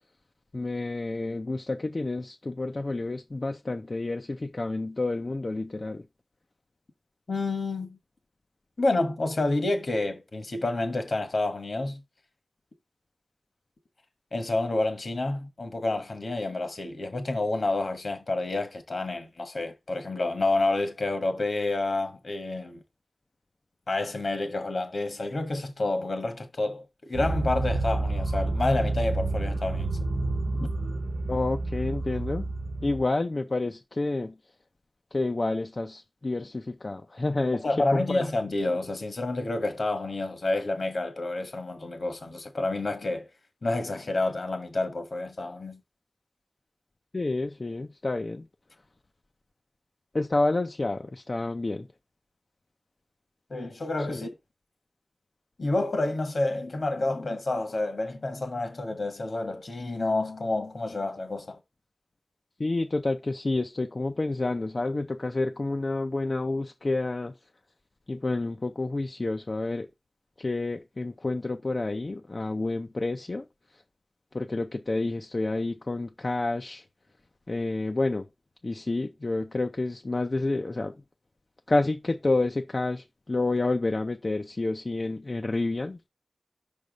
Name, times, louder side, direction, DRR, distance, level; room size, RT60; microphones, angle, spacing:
voice 1, 0.5-6.0 31.3-32.5 32.8-34.4 35.1-38.3 47.1-48.5 50.1-51.9 54.1-54.3 62.6-67.3 68.1-69.9 70.4-73.4 74.3-76.8 77.5-78.3 78.6-81.0 81.7-86.1, left 2 dB, 50° left, 0.5 m, -29 dB
voice 2, 7.3-8.0 8.8-12.0 14.3-22.8 23.9-30.0 30.6-30.7 37.6-43.3 43.6-45.8 53.5-54.3 55.6-61.6, left 2 dB, 70° left, 1.5 m, -29 dB
sound 1, 27.1-33.0, right 2 dB, 85° right, 0.9 m, -29 dB
5.5 x 3.4 x 5.2 m
cardioid pair, 50°, 0 cm